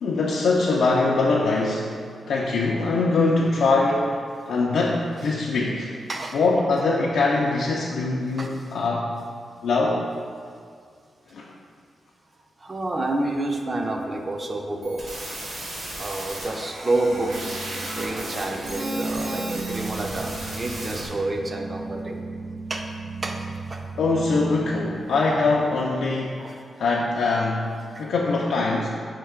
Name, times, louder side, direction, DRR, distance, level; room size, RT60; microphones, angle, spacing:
voice 1, 0.0-1.9 2.3-5.9 6.3-9.1 9.6-10.0 11.3-11.5 24.0-27.7 28.0-28.9, left 3 dB, 80° left, -3 dB, 0.3 m, -23 dB
voice 2, 12.6-15.0 15.9-17.5 17.9-22.2 22.7-22.9 23.2-23.8 26.4-26.5 27.9-28.0, right 2 dB, 30° right, 3 dB, 0.4 m, -29 dB
sound 1, 14.8-21.1, right 1 dB, 60° right, 1.0 m, -35 dB
sound 2, 17.1-25.9, right 3 dB, 90° right, 0.6 m, -35 dB
4.4 x 3.1 x 3.5 m, 2.2 s
wide cardioid pair, 125°, 0 cm